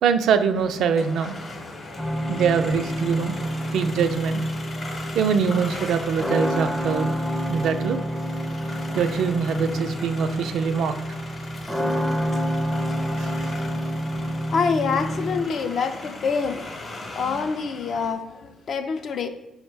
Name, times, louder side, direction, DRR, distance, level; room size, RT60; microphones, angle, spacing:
voice 1, 0.0-1.3 2.3-3.3 3.7-4.4 5.1-7.1 7.5-8.0 8.9-10.9 13.2-13.3, right 6 dB, 75° right, 8 dB, 0.3 m, -23 dB
sound 1, 0.5-18.1, left 2 dB, 35° left, 0.8 m, -38 dB
sound 2, 2.0-15.4, equal, ahead, 0.4 m, -28 dB
voice 2, 14.5-19.3, left 5 dB, 55° left, 7 dB, 0.4 m, -26 dB
4.9 x 2.1 x 4.5 m, 0.96 s
cardioid pair, 90°, 0 cm